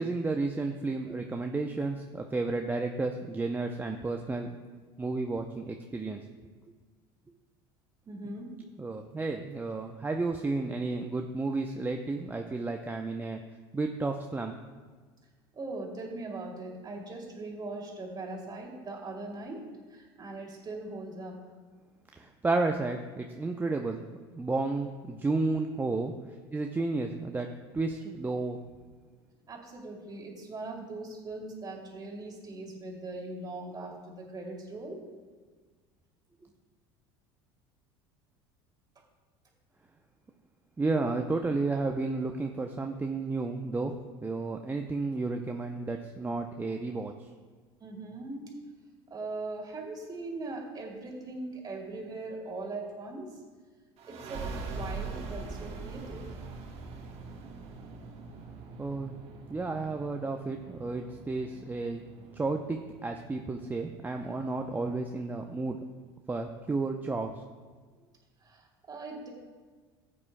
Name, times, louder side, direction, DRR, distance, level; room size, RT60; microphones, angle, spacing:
voice 1, 0.0-4.5 5.0-6.2 8.8-13.4 13.7-14.5 22.2-24.0 24.4-26.1 26.5-27.5 27.7-28.6 40.8-43.9 44.2-47.1 58.8-59.1 59.5-62.0 62.3-65.8 66.3-67.3, right 3 dB, 15° right, 3 dB, 0.6 m, -32 dB
voice 2, 8.1-8.5 15.5-19.6 19.9-21.4 29.5-35.0 47.8-48.5 49.1-53.3 54.1-56.2 66.4-66.5 68.4-69.3, right 2 dB, 30° right, -1 dB, 2.6 m, -40 dB
sound 1, 54.0-65.2, right 4 dB, 50° right, 1.4 m, -43 dB
15.0 x 8.5 x 2.2 m, 1.4 s
hypercardioid pair, 85°, 13 cm